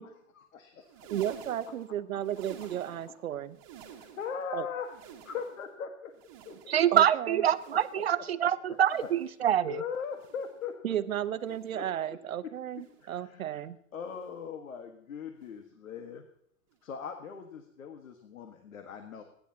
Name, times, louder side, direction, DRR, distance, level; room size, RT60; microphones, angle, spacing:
voice 1, 0.4-1.1 3.8-5.0 5.2-6.1 6.4-6.9 7.9-8.3 8.7-9.1 9.7-10.9 11.5-12.2 12.7-13.6 13.9-16.2 16.8-19.2, left 6 dB, 75° left, 6 dB, 1.6 m, -40 dB
sound 1, 0.8-3.2 3.5-4.5 4.8-5.7 6.1-7.0 7.4-8.2 8.7-9.4 10.1-10.7 11.4-11.9 12.7-13.2 14.1-14.4 15.4-15.6 16.7-16.8, right 8 dB, 25° right, 1.5 m, -51 dB
voice 2, 1.1-3.6 4.5-4.7 6.9-7.4 10.8-13.8, right 11 dB, 85° right, 13 dB, 1.0 m, -34 dB
voice 3, 6.7-9.8, right 10 dB, 50° right, 15 dB, 0.4 m, -25 dB
26.0 x 10.0 x 2.9 m, 0.72 s
hypercardioid pair, 180°, 41 cm